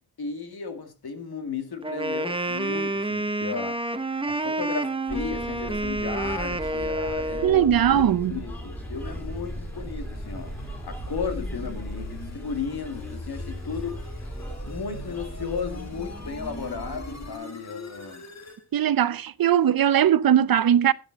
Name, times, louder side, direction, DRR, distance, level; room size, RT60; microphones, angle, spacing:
voice 1, 0.2-3.8 4.2-10.5 10.8-14.0 14.6-18.2, left 5 dB, 80° left, 2.2 m, -34 dB
Wind instrument woodwind instrument, 1.8-7.7, right 2 dB, 15° right, 0.8 m, -29 dB
sound 1, 5.1-17.3, right 1 dB, 5° left, 3.0 m, -38 dB
sound 2, 6.5-18.6, left 3 dB, 45° left, 1.7 m, -42 dB
voice 2, 7.4-8.3 18.7-20.9, right 10 dB, 65° right, 0.5 m, -20 dB
12.0 x 9.0 x 4.0 m
wide cardioid pair, 140°, 38 cm